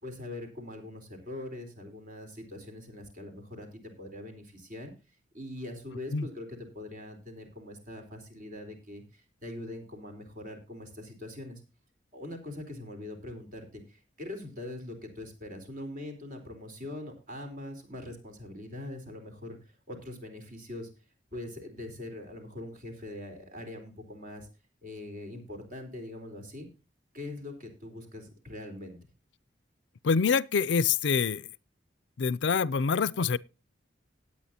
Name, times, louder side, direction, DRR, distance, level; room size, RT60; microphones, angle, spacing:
voice 1, 0.0-4.9 5.3-11.6 12.1-20.9 21.3-24.5 24.8-26.7 27.1-29.0, left 1 dB, 45° right, 3.9 m, -42 dB
voice 2, 30.0-31.5 32.2-33.4, left 5 dB, 70° left, 0.5 m, -26 dB
18.5 x 8.7 x 2.8 m
head